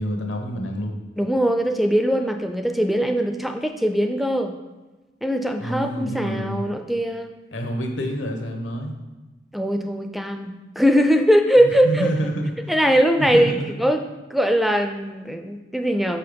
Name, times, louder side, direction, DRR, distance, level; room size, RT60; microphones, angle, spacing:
voice 1, 0.0-1.0 5.6-6.6 7.5-8.9 11.6-12.7 13.2-13.8, equal, 85° left, 3 dB, 1.1 m, -28 dB
voice 2, 1.2-4.5 5.2-7.3 9.5-12.1 12.7-13.5 13.8-14.0 14.3-16.2, equal, ahead, 6 dB, 0.3 m, -21 dB
6.1 x 5.6 x 5.2 m, 1.1 s
head